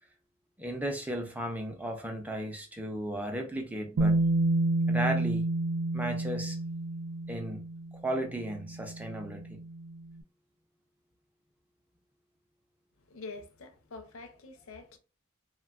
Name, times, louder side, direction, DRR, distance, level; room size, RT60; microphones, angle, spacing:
voice 1, 0.6-4.3 4.9-5.5 5.9-6.6 7.3-7.7 7.9-9.6, right 1 dB, 5° right, 0.4 m, -35 dB
Bass guitar, 4.0-10.0, right 2 dB, 75° right, 0.3 m, -30 dB
voice 2, 13.0-15.0, left 3 dB, 75° left, 0.5 m, -46 dB
3.3 x 2.2 x 2.3 m
head